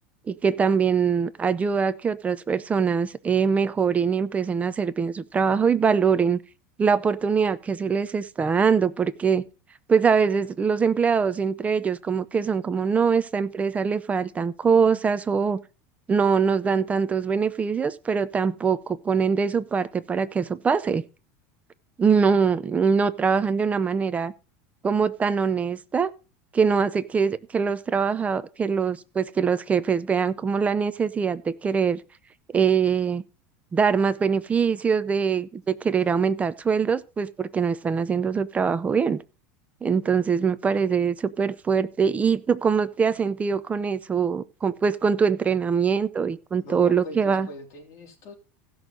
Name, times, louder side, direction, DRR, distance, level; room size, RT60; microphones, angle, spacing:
voice 1, 0.3-6.4 6.8-9.4 9.9-15.6 16.1-21.0 22.0-24.3 24.8-26.1 26.5-32.0 32.5-33.2 33.7-39.2 39.8-47.5, right 6 dB, 15° right, 0.6 m, -23 dB
voice 2, 46.6-48.3, left 1 dB, 45° left, 3.4 m, -40 dB
16.0 x 6.3 x 3.9 m
supercardioid pair, 135°, 8 cm